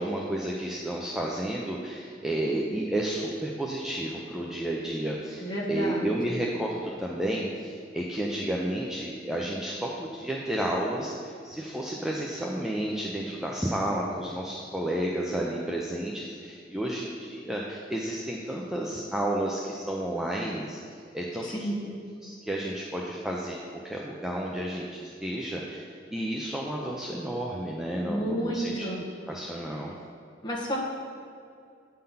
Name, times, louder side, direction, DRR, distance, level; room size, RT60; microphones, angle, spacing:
voice 1, 0.0-20.8 21.1-21.9 22.2-28.9 29.3-29.9, right 1 dB, 5° right, -3 dB, 0.5 m, -31 dB
voice 2, 5.4-6.4 21.4-21.9 28.1-29.0 30.4-30.8, right 1 dB, 25° left, -4 dB, 1.3 m, -31 dB
8.7 x 3.8 x 5.6 m, 2.3 s
head